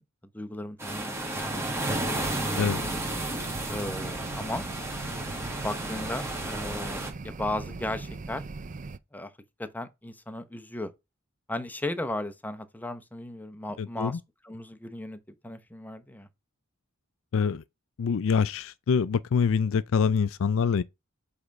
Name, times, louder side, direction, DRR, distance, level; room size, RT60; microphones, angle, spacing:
voice 1, 0.3-2.1 3.7-4.7 5.5-8.4 9.1-9.3 9.6-10.9 11.5-16.3, left 1 dB, 10° left, 0.8 m, -36 dB
sound 1, 0.8-7.1, right 1 dB, 10° right, 1.9 m, -32 dB
sound 2, 2.5-9.0, right 3 dB, 35° right, 0.5 m, -39 dB
voice 2, 13.8-14.2 17.3-17.6 18.0-20.8, left 6 dB, 65° left, 0.4 m, -25 dB
8.0 x 3.4 x 5.2 m
head